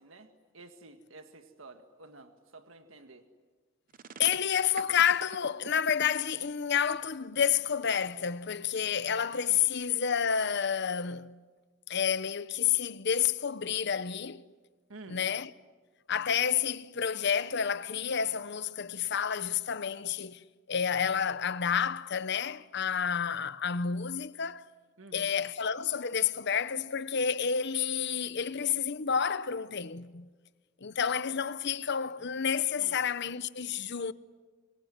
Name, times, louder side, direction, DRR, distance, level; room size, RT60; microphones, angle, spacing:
voice 1, 0.0-3.2 9.5-9.7 14.9-15.2 25.0-25.3 32.8-33.0, right 3 dB, 80° right, 1.9 m, -51 dB
sound 1, 3.9-6.0, right 5 dB, 45° right, 0.8 m, -44 dB
voice 2, 4.2-11.3 11.9-14.4 15.1-15.5 16.1-20.4 20.7-24.7 25.1-30.3 30.8-34.1, left 7 dB, 60° left, 0.9 m, -30 dB
26.5 x 24.0 x 9.5 m
head